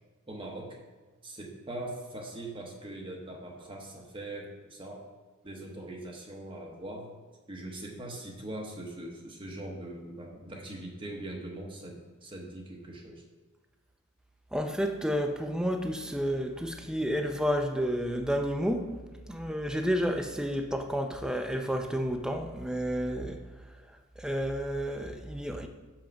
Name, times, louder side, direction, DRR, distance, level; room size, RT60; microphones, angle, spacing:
voice 1, 0.3-0.8 1.2-5.0 5.4-7.1 7.5-13.2, right 1 dB, 25° right, -1 dB, 0.9 m, -41 dB
voice 2, 14.5-18.9 19.3-23.4 24.2-25.7, equal, 5° right, 5 dB, 0.5 m, -30 dB
6.5 x 5.8 x 5.1 m, 1.3 s
head